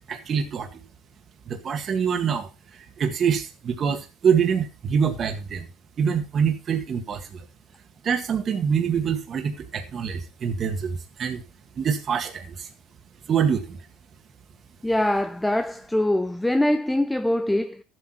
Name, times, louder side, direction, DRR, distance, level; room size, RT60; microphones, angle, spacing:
voice 1, 0.1-0.7 1.5-5.7 6.0-7.4 8.0-11.4 11.8-12.7 13.3-13.8, right 7 dB, 35° right, 1.8 m, -25 dB
voice 2, 14.8-17.8, left 1 dB, 5° left, 0.5 m, -23 dB
13.5 x 8.1 x 4.4 m
cardioid pair, 125°, 0 cm